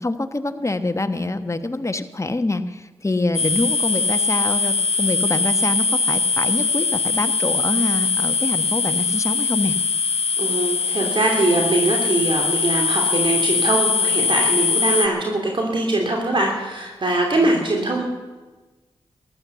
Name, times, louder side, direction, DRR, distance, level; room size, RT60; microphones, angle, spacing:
voice 1, 0.0-9.8, left 2 dB, 25° left, 9 dB, 1.3 m, -25 dB
sound 1, 3.3-15.1, left 4 dB, 65° left, 0.7 m, -21 dB
voice 2, 10.4-18.0, right 2 dB, 50° right, 0 dB, 2.9 m, -22 dB
14.5 x 11.5 x 6.9 m, 1.2 s
cardioid pair, 40°, 11 cm